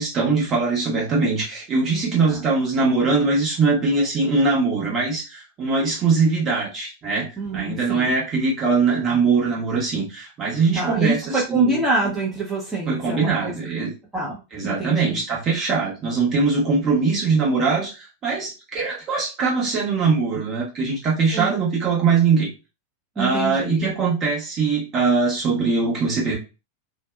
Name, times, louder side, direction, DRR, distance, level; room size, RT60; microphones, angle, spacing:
voice 1, 0.0-11.8 12.9-13.9 14.5-22.5 23.2-26.4, right 4 dB, 30° right, -3 dB, 1.0 m, -22 dB
voice 2, 7.4-8.1 10.7-13.6 14.1-14.4 14.6-15.2 21.3-21.6 23.2-23.9, right 3 dB, 10° right, -5 dB, 0.7 m, -25 dB
2.6 x 2.2 x 2.2 m, 0.30 s
figure-of-eight pair, 90°, 0 cm